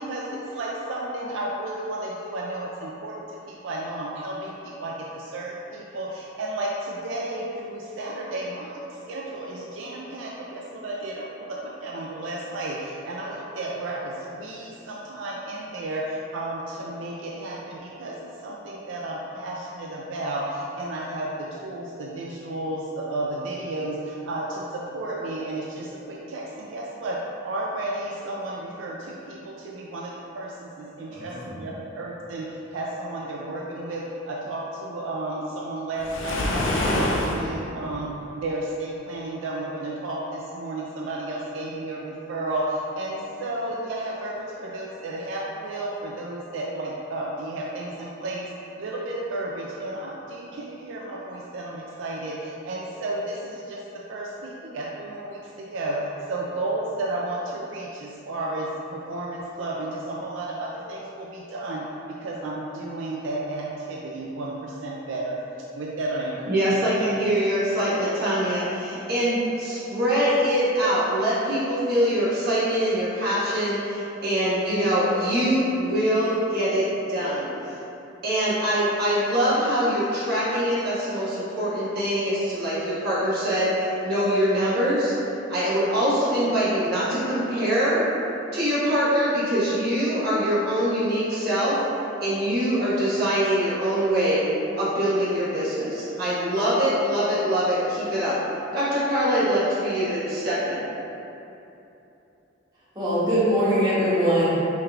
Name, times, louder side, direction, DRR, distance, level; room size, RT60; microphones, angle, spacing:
voice 1, 0.0-8.8 9.1-48.5 48.8-65.4 65.7-66.8, right 2 dB, 80° right, -3 dB, 0.4 m, -32 dB
voice 2, 31.1-31.6 102.9-104.6, equal, 20° right, -11 dB, 1.1 m, -22 dB
Waves surf, 36.0-37.5, left 1 dB, 85° left, 0.5 m, -25 dB
voice 3, 66.5-77.8 78.2-85.1 85.5-88.0 88.5-91.8 92.2-94.4 94.7-98.4 98.7-100.8, equal, 55° right, -10 dB, 1.3 m, -23 dB
4.6 x 3.1 x 2.4 m, 2.9 s
head